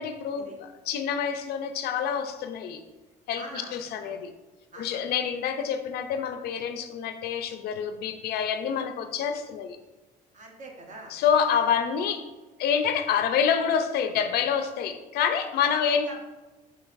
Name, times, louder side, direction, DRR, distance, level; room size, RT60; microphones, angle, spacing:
voice 1, 0.0-2.8 3.3-4.3 4.8-9.8 11.1-12.2 12.6-16.1, left 7 dB, 70° left, 8 dB, 0.5 m, -27 dB
voice 2, 3.3-4.2 4.7-5.0 10.3-11.1 11.5-11.6 15.6-16.2, right 1 dB, 50° right, 0 dB, 1.1 m, -43 dB
7.1 x 2.9 x 2.5 m, 1.2 s
cardioid pair, 110°, 17 cm